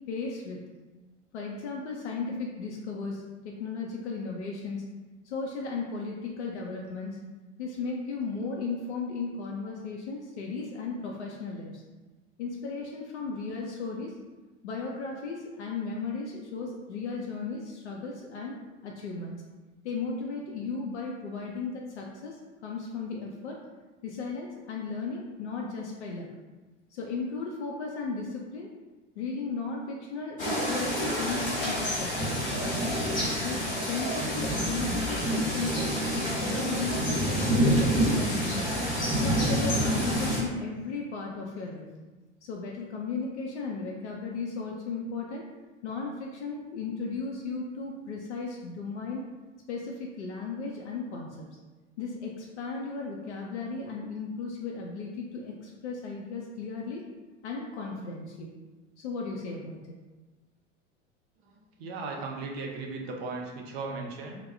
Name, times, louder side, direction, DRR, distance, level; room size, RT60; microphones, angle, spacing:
voice 1, 0.1-0.6 1.3-4.9 5.2-7.2 7.6-11.8 12.4-14.1 14.6-18.6 18.8-19.4 19.8-23.6 24.0-26.3 26.9-28.7 29.2-33.0 33.4-35.9 36.4-38.7 39.2-41.9 42.4-45.5 45.8-49.3 49.7-51.5 52.0-57.0 57.4-58.5 59.0-59.9, left 4 dB, 70° left, -1 dB, 0.5 m, -35 dB
sound 1, 30.4-40.4, equal, 20° left, 0.9 m, -27 dB
voice 2, 61.8-64.4, right 3 dB, 55° right, 0 dB, 0.6 m, -36 dB
2.2 x 2.0 x 3.2 m, 1.2 s
figure-of-eight pair, 75°, 36 cm